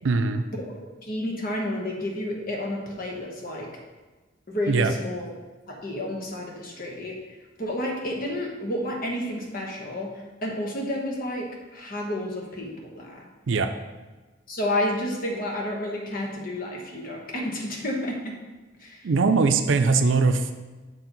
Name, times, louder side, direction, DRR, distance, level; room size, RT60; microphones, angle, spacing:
voice 1, 0.0-0.5 4.7-4.9 13.5-13.7 19.0-20.5, right 4 dB, 75° right, 8 dB, 0.5 m, -21 dB
voice 2, 1.0-3.7 4.5-5.2 5.7-7.2 7.6-10.1 10.4-13.2 14.5-18.4 18.8-19.1, left 1 dB, 50° left, 0 dB, 1.2 m, -30 dB
6.6 x 4.5 x 4.0 m, 1.2 s
head